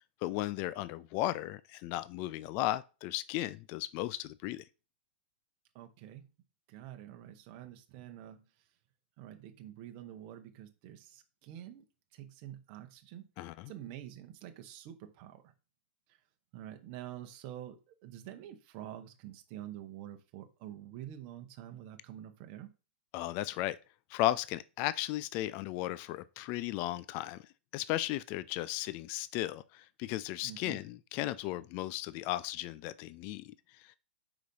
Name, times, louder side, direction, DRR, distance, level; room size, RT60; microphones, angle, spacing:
voice 1, 0.2-4.6 13.4-13.7 23.1-23.8 24.1-27.5 27.7-33.9, left 15 dB, 35° left, 0.4 m, -35 dB
voice 2, 5.7-6.2 6.7-8.4 9.2-11.8 12.1-13.3 13.7-15.5 16.5-22.7 30.4-30.8, right 12 dB, 40° right, 0.9 m, -47 dB
5.0 x 4.0 x 5.3 m
hypercardioid pair, 150°, 6 cm